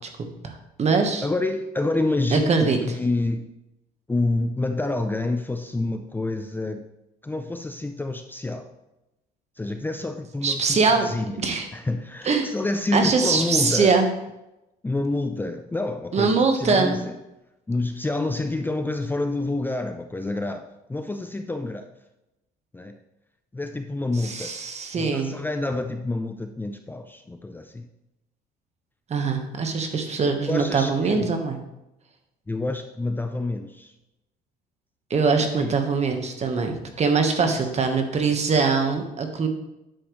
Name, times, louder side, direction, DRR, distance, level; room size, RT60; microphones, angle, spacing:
voice 1, 0.2-1.3 2.3-2.8 10.4-11.1 11.4-11.7 12.2-12.5 12.9-14.1 16.1-17.0 24.2-25.4 29.1-31.6 35.1-39.5, right 4 dB, 40° right, 5 dB, 1.4 m, -22 dB
voice 2, 1.2-3.5 4.1-6.8 7.2-8.7 9.6-11.4 11.7-14.0 14.8-17.2 17.7-21.9 22.7-23.0 23.5-24.5 25.0-27.9 30.5-31.3 32.5-33.9 35.6-35.7 37.5-37.6, left 2 dB, 10° left, 6 dB, 0.6 m, -28 dB
10.0 x 7.6 x 3.2 m, 0.92 s
cardioid pair, 110°, 17 cm